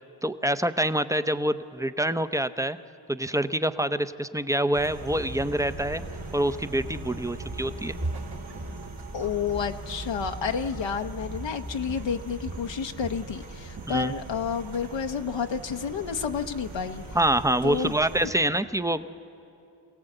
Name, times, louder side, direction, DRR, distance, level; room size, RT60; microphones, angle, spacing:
voice 1, 0.2-2.8 3.1-6.0 6.3-8.0 13.9-14.1 17.1-19.0, right 1 dB, 5° right, 10 dB, 0.6 m, -26 dB
sound 1, 4.7-18.3, right 2 dB, 80° right, 2.8 m, -40 dB
Walk footsteps, 7.5-11.0 11.3-11.6 11.9-13.3 13.6-14.0, right 3 dB, 55° right, 1.8 m, -40 dB
voice 2, 9.1-17.0 17.6-17.9, left 6 dB, 65° left, 6 dB, 0.8 m, -30 dB
25.5 x 17.5 x 7.9 m, 2.7 s
cardioid pair, 55°, 47 cm